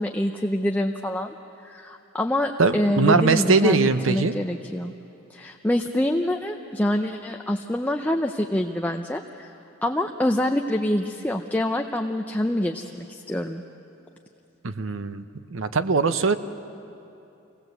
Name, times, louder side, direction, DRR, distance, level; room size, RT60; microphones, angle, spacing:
voice 1, 0.0-1.3 1.6-4.9 5.3-9.5 9.8-13.6, left 1 dB, 10° left, 3 dB, 0.6 m, -26 dB
voice 2, 2.6-4.3 14.6-15.2 15.5-16.3, right 4 dB, 80° right, 11 dB, 0.9 m, -21 dB
26.5 x 18.5 x 8.0 m, 2.8 s
head